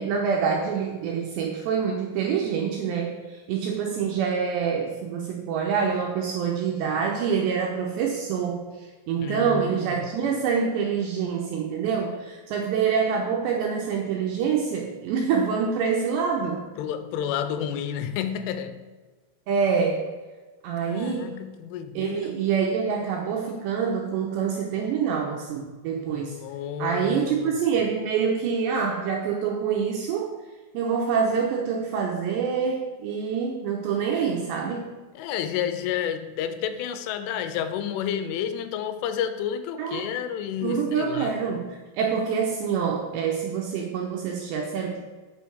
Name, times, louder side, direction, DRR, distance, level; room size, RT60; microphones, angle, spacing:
voice 1, 0.0-16.7 19.5-20.1 20.6-21.3 22.0-26.4 26.8-30.4 30.7-34.9 39.8-40.1 40.6-45.0, right 6 dB, 85° right, 1 dB, 2.6 m, -26 dB
voice 2, 9.2-10.1 16.8-18.9 20.8-22.3 26.1-27.5 35.1-41.4, left 9 dB, 80° left, 10 dB, 3.0 m, -30 dB
8.2 x 6.7 x 6.9 m, 1.3 s
omnidirectional pair, 6.0 m